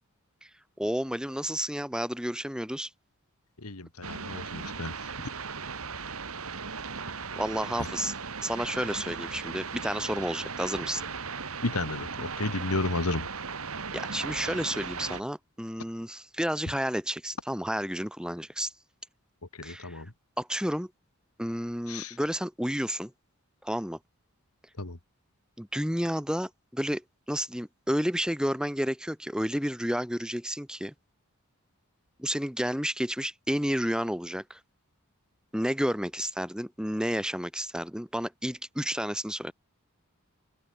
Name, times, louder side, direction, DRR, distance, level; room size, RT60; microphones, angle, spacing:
voice 1, 0.8-2.9 7.4-8.1 8.4-11.0 13.9-18.7 19.6-20.0 20.4-20.9 21.4-23.1 23.6-24.0 25.6-27.0 27.3-30.9 32.2-34.6 35.5-39.5, equal, 5° right, 5.5 m, -31 dB
voice 2, 3.6-4.9 11.6-13.3 19.6-20.1 21.9-22.1 24.8-25.0, left 2 dB, 85° left, 2.4 m, -32 dB
sound 1, 4.0-15.2, right 5 dB, 75° right, 2.2 m, -37 dB
head